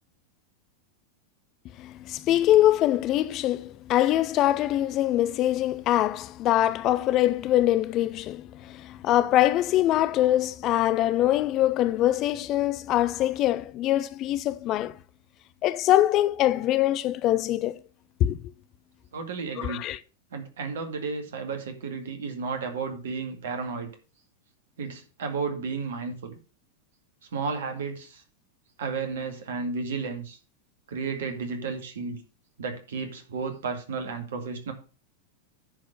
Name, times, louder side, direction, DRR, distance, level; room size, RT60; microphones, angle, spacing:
voice 1, 1.8-15.0 15.6-17.8 18.2-18.4 19.6-20.0, left 13 dB, 35° left, 0.5 m, -23 dB
voice 2, 19.1-19.8 20.3-23.9 24.8-26.4 27.3-28.2 28.8-30.4 30.9-32.2 32.6-34.7, right 5 dB, 60° right, 2.0 m, -33 dB
10.5 x 4.3 x 6.5 m
figure-of-eight pair, 90°, 0 cm